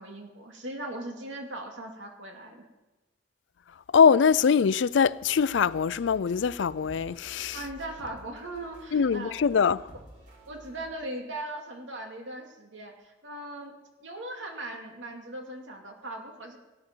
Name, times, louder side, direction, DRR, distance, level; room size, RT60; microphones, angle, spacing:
voice 1, 0.0-2.6 7.5-9.3 9.6-9.7 10.5-13.7 14.0-16.6, right 1 dB, 85° right, 2.5 m, -39 dB
voice 2, 3.9-7.6 8.9-9.8, left 6 dB, 75° left, 0.4 m, -22 dB
sound 1, 5.0-10.8, equal, 65° right, 5.3 m, -51 dB
18.0 x 11.0 x 4.5 m
head